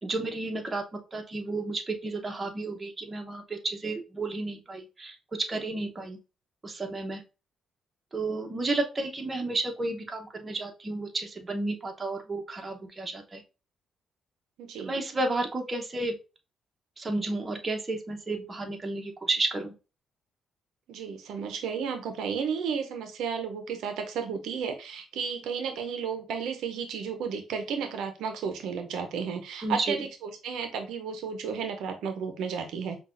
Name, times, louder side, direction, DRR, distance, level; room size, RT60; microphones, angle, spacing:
voice 1, 0.0-6.2 6.6-7.2 8.1-13.4 14.8-16.2 17.0-19.7 29.6-30.0, right 2 dB, 25° right, 3 dB, 0.9 m, -32 dB
voice 2, 14.6-14.9 20.9-33.0, right 6 dB, 80° right, 6 dB, 0.6 m, -33 dB
5.5 x 2.3 x 2.5 m, 0.31 s
cardioid pair, 90°, 0 cm